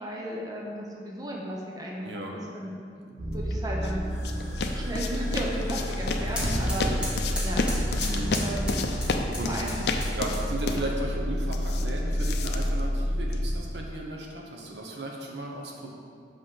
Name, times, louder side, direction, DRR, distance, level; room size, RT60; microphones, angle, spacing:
voice 1, 0.0-4.2 4.6-6.9 7.4-7.6 8.4-8.8 9.4-9.8, right 1 dB, 20° right, -3 dB, 0.9 m, -35 dB
voice 2, 2.0-2.3 6.8-7.0 8.0-8.4 9.4-9.5 10.1-15.9, right 1 dB, 75° right, 0 dB, 1.1 m, -35 dB
sound 1, 3.2-13.6, equal, 50° right, 1.1 m, -30 dB
sound 2, 3.5-13.5, left 3 dB, 65° left, 0.6 m, -33 dB
sound 3, 4.0-10.7, equal, 5° right, 1.5 m, -36 dB
6.3 x 5.3 x 5.7 m, 2.2 s
head